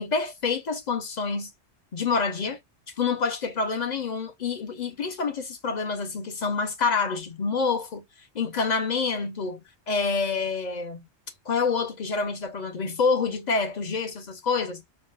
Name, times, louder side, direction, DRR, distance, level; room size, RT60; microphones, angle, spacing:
voice 1, 0.0-1.5 1.9-2.6 3.0-8.0 8.3-9.6 9.9-11.0 11.5-14.8, left 4 dB, 45° left, 0.7 m, -27 dB
4.6 x 2.1 x 2.3 m
omnidirectional pair, 1.1 m